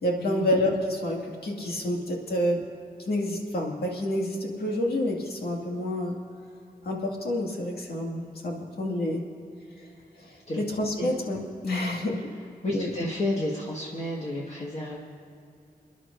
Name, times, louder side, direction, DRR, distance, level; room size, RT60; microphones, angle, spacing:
voice 1, 0.0-2.7 3.1-6.2 6.8-9.3 10.2-11.4 11.6-12.3 12.7-12.9, left 1 dB, 80° left, -1 dB, 2.1 m, -28 dB
voice 2, 12.6-15.0, left 1 dB, 40° left, -5 dB, 1.7 m, -31 dB
28.5 x 11.0 x 2.6 m, 2.5 s
wide cardioid pair, 90°, 16 cm